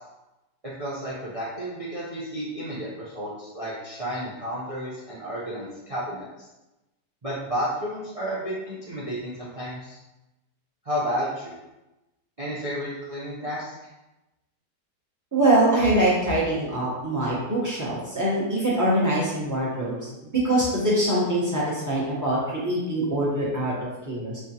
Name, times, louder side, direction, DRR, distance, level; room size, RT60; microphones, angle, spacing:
voice 1, 0.6-6.2 7.2-10.0 10.8-11.5 12.4-13.7, equal, 55° right, -8 dB, 0.3 m, -32 dB
voice 2, 15.3-24.4, right 1 dB, 15° right, -8 dB, 0.8 m, -24 dB
3.7 x 3.3 x 2.8 m, 1.0 s
omnidirectional pair, 1.9 m